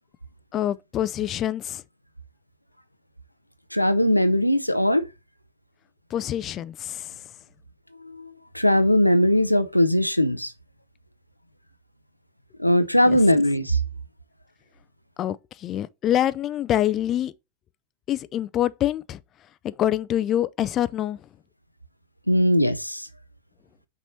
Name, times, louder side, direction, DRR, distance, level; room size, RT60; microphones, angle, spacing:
voice 1, 0.5-1.8 6.1-7.1 13.0-13.2 15.2-17.3 18.1-19.2 19.6-21.2, left 12 dB, 30° left, 0.4 m, -25 dB
voice 2, 3.7-5.1 8.0-10.5 12.6-13.8 22.3-23.1, left 1 dB, 90° left, 0.5 m, -20 dB
5.9 x 4.2 x 4.2 m
figure-of-eight pair, 90°, 0 cm